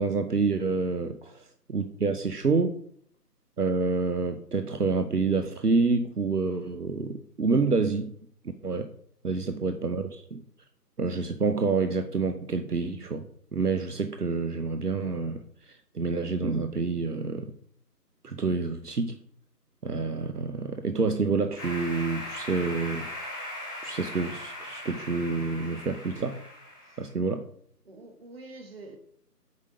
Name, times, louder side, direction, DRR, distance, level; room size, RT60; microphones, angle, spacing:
voice 1, 0.0-1.2 1.7-2.8 3.6-8.1 8.6-8.9 9.2-10.4 11.0-13.3 13.5-17.5 18.2-19.2 19.8-23.1 23.8-26.4 27.0-27.4, right 4 dB, 70° right, 1.0 m, -28 dB
voice 2, 9.3-9.8 26.8-27.4 27.8-29.0, right 2 dB, 35° right, 1.9 m, -48 dB
sound 1, 21.6-27.1, left 1 dB, 15° left, 2.4 m, -39 dB
8.2 x 4.9 x 6.9 m
figure-of-eight pair, 160°, 48 cm